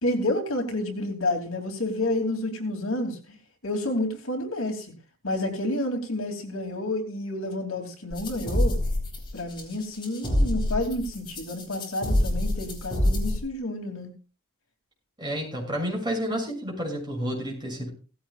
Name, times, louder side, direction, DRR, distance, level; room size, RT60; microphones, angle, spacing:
voice 1, 0.0-3.4 3.6-4.9 5.2-8.8 9.3-14.1, left 1 dB, 65° left, 3 dB, 2.8 m, -29 dB
sound 1, 8.1-13.4, left 1 dB, 20° left, 4.0 m, -26 dB
voice 2, 15.2-17.9, equal, 20° right, -1 dB, 6.8 m, -30 dB
17.0 x 15.5 x 2.4 m, 0.34 s
head